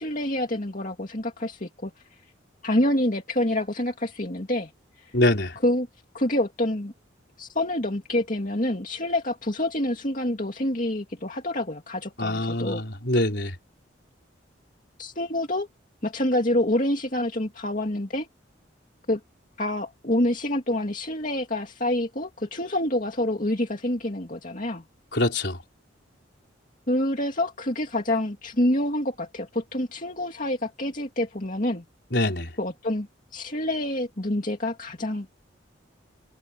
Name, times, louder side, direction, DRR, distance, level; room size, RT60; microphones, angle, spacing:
voice 1, 0.0-1.9 2.6-4.7 5.0-5.1 5.6-5.9 6.1-6.9 7.4-12.8 15.0-15.7 16.0-18.3 19.1-19.2 19.6-24.8 26.9-31.8 32.6-33.1 33.3-35.3, left 1 dB, 45° left, 2.5 m, -27 dB
voice 2, 5.1-5.5 12.2-13.5 25.1-25.6 32.1-32.5, left 1 dB, 60° left, 4.5 m, -24 dB
head